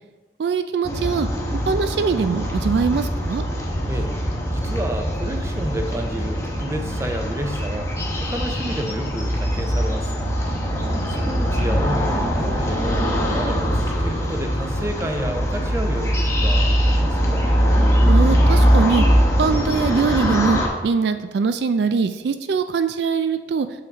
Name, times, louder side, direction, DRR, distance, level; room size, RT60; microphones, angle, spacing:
voice 1, 0.4-1.3 1.7-3.4 10.6-11.0 18.1-19.0 19.4-23.7, right 5 dB, 70° right, 9 dB, 0.3 m, -22 dB
sound 1, 0.8-20.7, equal, 15° left, 1.0 m, -21 dB
voice 2, 4.5-7.9 8.2-10.3 11.1-13.0 13.3-17.4, right 1 dB, 15° right, 5 dB, 0.6 m, -30 dB
6.5 x 5.8 x 4.0 m, 1.3 s
head